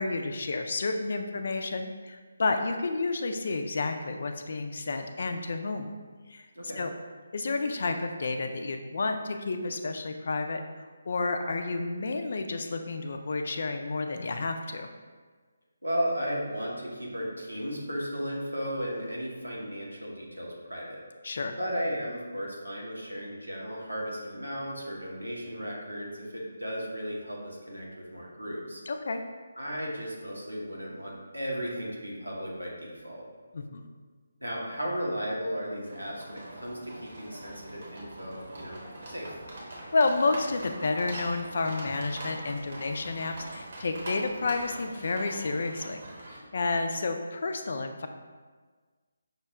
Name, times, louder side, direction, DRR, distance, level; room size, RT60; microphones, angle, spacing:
voice 1, 0.0-5.9 6.3-6.5 6.8-6.9 7.3-10.6 11.1-14.9 21.2-21.5 28.9-29.2 33.5-33.9 39.9-46.0 46.5-48.1, left 3 dB, 45° left, 6 dB, 0.3 m, -30 dB
voice 2, 15.8-21.0 21.6-28.8 29.6-33.3 34.4-38.8 39.1-39.4, equal, 85° right, -3 dB, 1.0 m, -35 dB
sound 1, 35.8-46.4, right 1 dB, 45° right, 0.9 m, -43 dB
5.6 x 2.1 x 3.4 m, 1.4 s
figure-of-eight pair, 150°, 0 cm